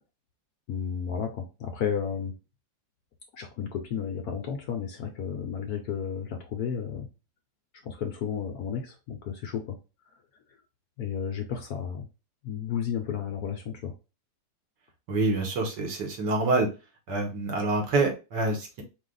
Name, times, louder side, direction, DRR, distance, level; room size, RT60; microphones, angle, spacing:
voice 1, 0.7-2.4 3.3-7.1 7.8-9.8 10.1-10.2 11.0-12.1 12.4-13.9, left 7 dB, 65° left, 3 dB, 1.0 m, -32 dB
voice 2, 15.1-16.7 17.1-18.8, right 3 dB, 70° right, 3 dB, 1.9 m, -26 dB
4.8 x 2.5 x 3.8 m, 0.29 s
omnidirectional pair, 2.0 m